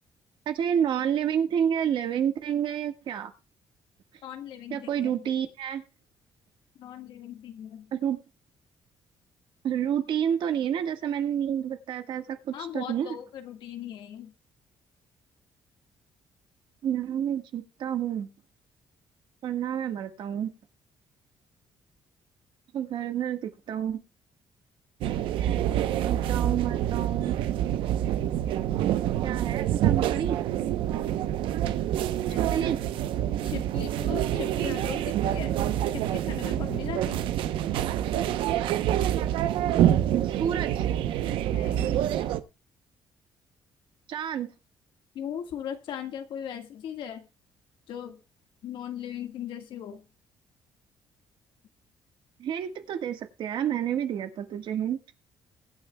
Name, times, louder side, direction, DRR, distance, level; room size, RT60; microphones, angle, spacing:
voice 1, 0.4-3.3 4.7-5.8 7.9-8.2 9.6-13.2 16.8-18.3 19.4-20.5 22.7-24.0 26.0-27.3 29.2-30.4 32.3-32.8 40.1-40.8 44.1-44.5 52.4-55.0, right 9 dB, 65° right, 1.5 m, -29 dB
voice 2, 4.2-5.2 6.8-7.9 12.5-14.3 32.3-32.6 33.4-35.6 35.9-37.3 41.5-42.0 45.1-47.3 47.9-48.2 48.6-50.0, left 9 dB, 75° left, 1.7 m, -38 dB
sound 1, 25.0-42.4, right 11 dB, 85° right, 0.8 m, -27 dB
22.5 x 8.9 x 2.3 m
cardioid pair, 115°, 9 cm